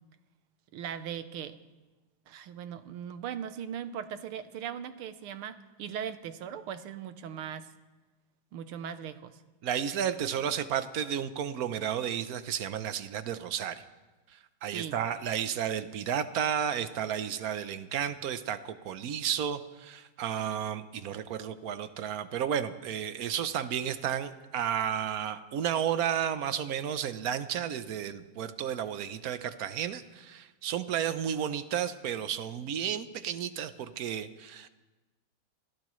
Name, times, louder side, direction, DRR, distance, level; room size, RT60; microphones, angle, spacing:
voice 1, 0.7-1.6 2.3-7.7 8.5-9.4 14.7-15.0, right 8 dB, 90° right, 11 dB, 1.8 m, -39 dB
voice 2, 9.6-13.8 14.3-34.7, right 9 dB, 60° right, 11 dB, 0.9 m, -32 dB
26.5 x 17.0 x 3.2 m, 1.2 s
omnidirectional pair, 2.3 m